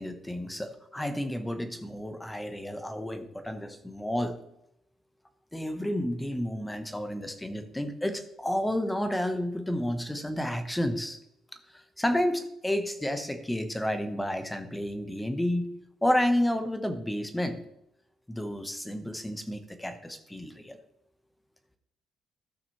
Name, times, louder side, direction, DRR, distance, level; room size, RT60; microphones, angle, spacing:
voice 1, 0.0-4.4 5.5-11.2 12.0-17.6 18.3-20.8, left 1 dB, 10° left, 8 dB, 1.1 m, -31 dB
14.0 x 6.0 x 3.1 m, 0.79 s
cardioid pair, 90°, 0 cm